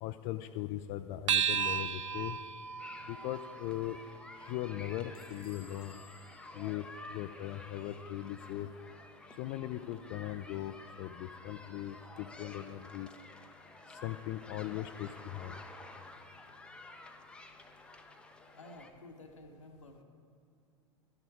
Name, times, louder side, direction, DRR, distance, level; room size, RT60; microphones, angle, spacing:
voice 1, 0.0-2.4 3.1-4.0 4.4-6.0 6.5-6.9 7.1-8.7 9.4-13.1 14.0-15.6, left 14 dB, 45° left, 9 dB, 0.4 m, -39 dB
sound 1, 1.3-6.0, right 8 dB, 75° right, 0.4 m, -36 dB
sound 2, 2.8-18.9, left 2 dB, 5° left, 0.7 m, -52 dB
Bell / Door, 5.1-7.6, left 3 dB, 25° left, 1.1 m, -60 dB
voice 2, 18.5-20.0, left 2 dB, 85° left, 4 dB, 1.0 m, -52 dB
12.5 x 6.9 x 4.9 m, 2.5 s
figure-of-eight pair, 90°, 16 cm